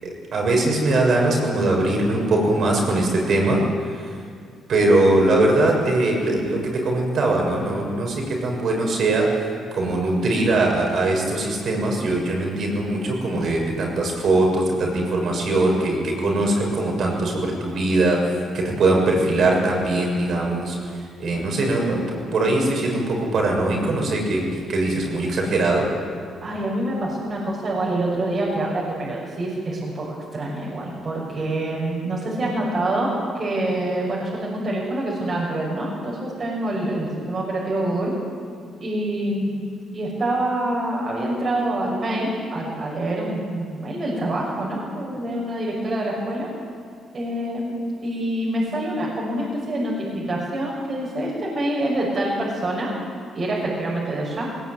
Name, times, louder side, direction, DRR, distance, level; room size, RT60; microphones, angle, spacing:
voice 1, 0.0-3.6 4.7-9.5 9.8-20.8 21.2-25.9, right 2 dB, 60° right, 0 dB, 6.8 m, -21 dB
voice 2, 26.4-38.1 38.8-46.5 47.1-52.9 53.3-54.5, right 1 dB, 40° right, -4 dB, 6.3 m, -26 dB
19.5 x 19.0 x 9.7 m, 2.2 s
cardioid pair, 90°, 0 cm